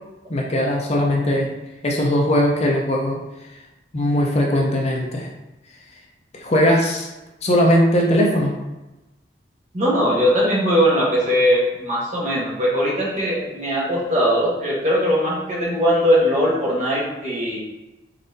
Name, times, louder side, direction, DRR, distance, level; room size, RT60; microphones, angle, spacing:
voice 1, 0.3-1.5 1.8-3.2 3.9-5.3 6.3-7.1 7.4-8.5, equal, 35° left, -1 dB, 0.5 m, -19 dB
voice 2, 9.7-17.6, equal, 40° right, -5 dB, 1.2 m, -20 dB
3.9 x 3.9 x 2.6 m, 1.0 s
head